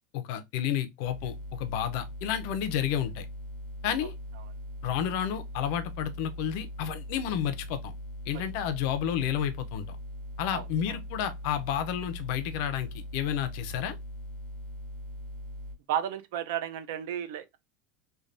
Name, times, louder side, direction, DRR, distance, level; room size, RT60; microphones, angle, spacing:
voice 1, 0.1-3.3 3.8-4.1 4.8-7.9 8.3-10.0 10.4-14.0, left 9 dB, 50° left, 0.4 m, -31 dB
sound 1, 1.0-15.7, equal, 50° right, 1.4 m, -41 dB
voice 2, 10.5-11.0 15.9-17.6, right 10 dB, 65° right, 0.4 m, -33 dB
3.2 x 2.2 x 2.5 m
supercardioid pair, 175°, 0 cm